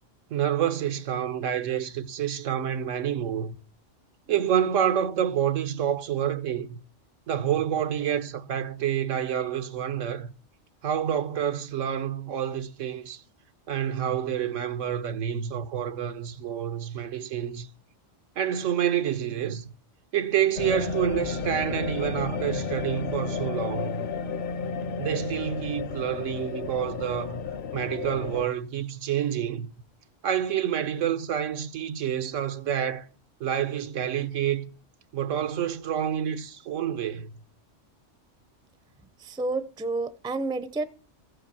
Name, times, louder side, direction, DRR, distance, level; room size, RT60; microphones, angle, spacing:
voice 1, 0.3-3.6 4.3-6.8 7.3-10.3 10.8-13.2 13.7-17.7 18.4-19.7 20.1-24.1 25.0-27.4 27.7-29.7 30.2-33.0 33.4-34.7 35.1-37.4, right 9 dB, 90° right, 1.2 m, -28 dB
sound 1, 20.6-28.5, left 5 dB, 55° left, 0.8 m, -32 dB
voice 2, 39.2-40.8, right 3 dB, 5° right, 0.3 m, -30 dB
14.5 x 5.6 x 6.9 m
omnidirectional pair, 1.3 m